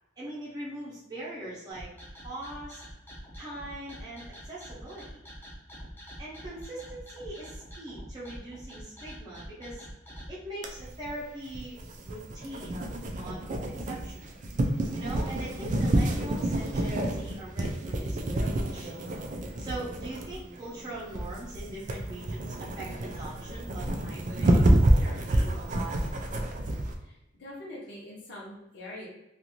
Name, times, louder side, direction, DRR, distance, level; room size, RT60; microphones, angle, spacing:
voice 1, 0.2-1.9 2.2-2.8 3.4-5.2 6.2-9.8 10.3-11.8 12.0-13.4 13.9-14.3 14.9-18.9 19.6-22.9 23.1-24.6 25.0-25.5, right 1 dB, 20° right, -8 dB, 0.8 m, -41 dB
sound 1, 1.7-10.3, equal, 10° left, 0.7 m, -45 dB
sound 2, 10.6-26.9, right 1 dB, 40° right, 0.4 m, -28 dB
voice 2, 27.0-29.1, left 1 dB, 60° left, -5 dB, 0.9 m, -43 dB
2.6 x 2.4 x 2.9 m, 0.91 s
head